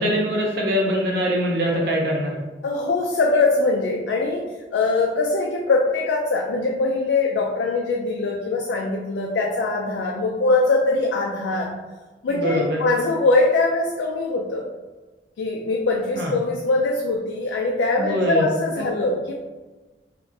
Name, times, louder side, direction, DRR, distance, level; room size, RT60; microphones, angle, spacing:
voice 1, 0.0-2.4 12.3-12.8 16.1-16.3 18.0-18.5 18.8-18.9, equal, 60° right, -2 dB, 0.6 m, -23 dB
voice 2, 2.6-11.7 12.2-14.7 15.4-19.3, left 3 dB, 85° left, 0 dB, 0.3 m, -22 dB
3.1 x 2.5 x 2.6 m, 1.3 s
head